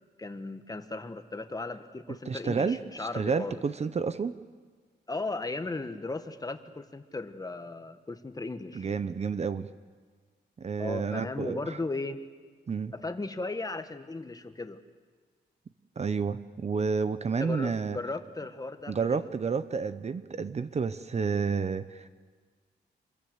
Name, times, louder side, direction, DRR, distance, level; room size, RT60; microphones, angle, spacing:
voice 1, 0.2-3.6 5.1-8.9 10.8-12.2 12.9-14.8 17.4-19.3, left 3 dB, 20° left, 9 dB, 1.3 m, -36 dB
voice 2, 2.3-4.4 8.7-9.7 10.6-11.8 12.7-12.9 16.0-18.0 18.9-22.1, right 5 dB, 35° right, 12 dB, 0.8 m, -30 dB
26.5 x 21.0 x 8.0 m, 1.5 s
wide cardioid pair, 140°, 18 cm